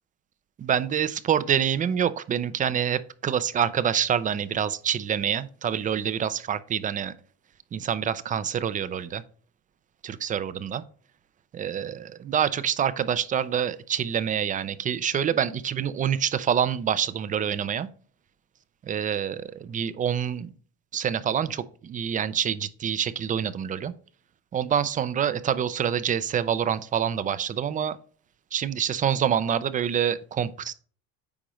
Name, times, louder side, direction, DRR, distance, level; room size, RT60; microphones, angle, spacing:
voice 1, 0.6-7.1 7.7-9.2 10.0-10.8 11.5-17.9 18.8-20.5 20.9-23.9 24.5-28.0 28.5-30.7, right 8 dB, 25° right, 0.4 m, -26 dB
8.6 x 5.1 x 3.1 m
cardioid pair, 140°, 33 cm